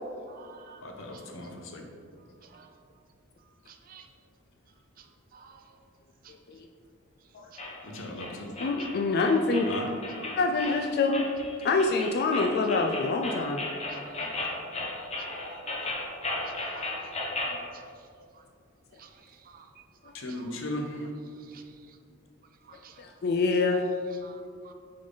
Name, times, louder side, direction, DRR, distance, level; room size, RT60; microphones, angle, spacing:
voice 1, 0.3-0.8 2.5-2.7 3.9-4.0 5.3-5.5 19.0-19.1 19.5-19.6 21.5-21.6 22.7-22.9 24.2-24.7, right 7 dB, 40° right, 5 dB, 0.5 m, -51 dB
voice 2, 0.8-1.9 7.8-8.6 9.7-10.0 14.1-14.5 14.7-14.8 20.1-21.1, left 1 dB, 65° left, 2 dB, 0.8 m, -37 dB
sound 1, 7.6-17.6, left 2 dB, 30° left, 1.0 m, -35 dB
voice 3, 8.6-9.7 10.3-11.2 11.6-13.6 16.9-17.0 23.0-23.8, left 3 dB, 50° left, 4 dB, 0.3 m, -26 dB
6.3 x 3.9 x 3.8 m, 2.2 s
head